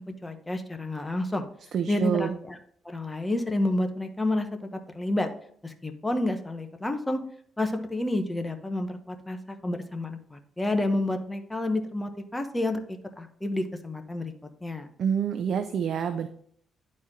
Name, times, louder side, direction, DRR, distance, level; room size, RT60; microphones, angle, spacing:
voice 1, 0.0-1.5 1.9-2.6 2.8-5.3 5.6-7.2 7.6-14.3 14.6-14.9, left 1 dB, 10° left, 6 dB, 1.0 m, -30 dB
voice 2, 1.7-2.4 15.0-16.3, right 7 dB, 65° right, 8 dB, 0.5 m, -27 dB
10.5 x 4.3 x 3.7 m, 0.62 s
cardioid pair, 90°, 0 cm